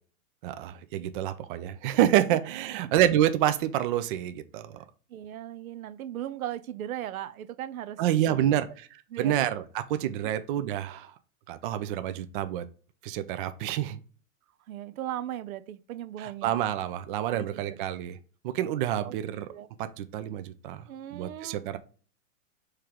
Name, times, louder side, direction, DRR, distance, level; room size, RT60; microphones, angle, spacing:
voice 1, 0.4-4.8 8.0-8.9 9.2-11.1 11.5-12.7 13.0-14.0 16.2-18.2 18.4-19.5 19.8-21.8, right 12 dB, 40° right, 0.5 m, -28 dB
voice 2, 5.1-8.7 9.1-9.3 14.7-16.5 17.3-17.8 19.0-19.2 19.5-19.7 20.9-21.8, right 12 dB, 85° right, 0.6 m, -38 dB
4.4 x 3.2 x 3.6 m
hypercardioid pair, 140°, 41 cm